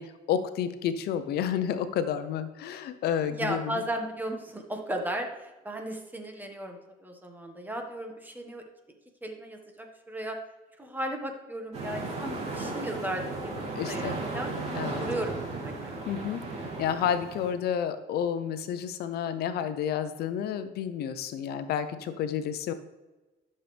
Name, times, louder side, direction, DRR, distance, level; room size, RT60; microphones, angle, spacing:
voice 1, 0.0-3.8 13.7-14.2 14.7-15.0 16.1-16.4 16.8-22.7, left 8 dB, 70° left, 10 dB, 0.7 m, -30 dB
voice 2, 3.3-8.6 9.2-10.4 10.8-14.5 15.0-16.0, right 1 dB, 10° right, 3 dB, 1.5 m, -35 dB
sound 1, 11.7-17.5, right 3 dB, 40° right, 3.1 m, -35 dB
12.0 x 6.7 x 3.4 m, 1.1 s
cardioid pair, 110°, 17 cm